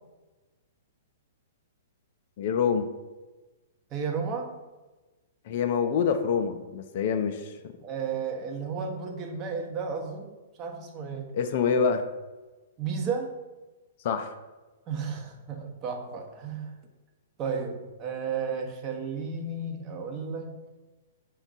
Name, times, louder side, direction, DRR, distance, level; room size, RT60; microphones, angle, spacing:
voice 1, 2.4-2.9 5.5-7.5 11.3-12.0 14.0-14.3, left 6 dB, 50° left, 7 dB, 0.4 m, -26 dB
voice 2, 3.9-4.5 7.8-11.3 12.8-13.3 14.9-16.7 17.4-20.6, right 5 dB, 30° right, 1 dB, 0.8 m, -33 dB
5.0 x 2.3 x 4.0 m, 1.2 s
figure-of-eight pair, 110°, 0 cm